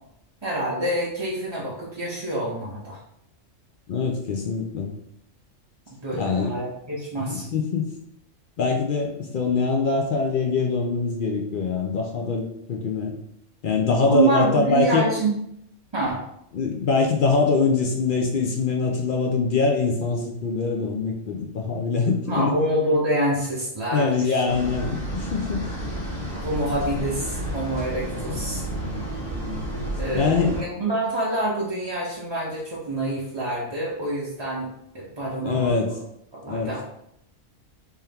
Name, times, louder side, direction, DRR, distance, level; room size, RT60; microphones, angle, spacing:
voice 1, 0.4-3.0 6.0-7.5 14.1-15.3 15.9-16.2 22.2-24.4 26.3-28.6 29.9-34.7 34.9-35.9 36.3-36.8, right 1 dB, 30° right, -6 dB, 0.5 m, -26 dB
voice 2, 3.9-4.9 6.1-6.5 7.3-7.9 8.6-13.1 13.6-15.0 16.5-22.5 23.9-25.7 30.1-30.6 35.4-35.9 36.5-36.8, left 4 dB, 65° left, 2 dB, 0.5 m, -23 dB
sound 1, 24.5-30.6, right 1 dB, 80° left, 1.8 m, -31 dB
3.6 x 2.9 x 3.4 m, 0.76 s
omnidirectional pair, 1.3 m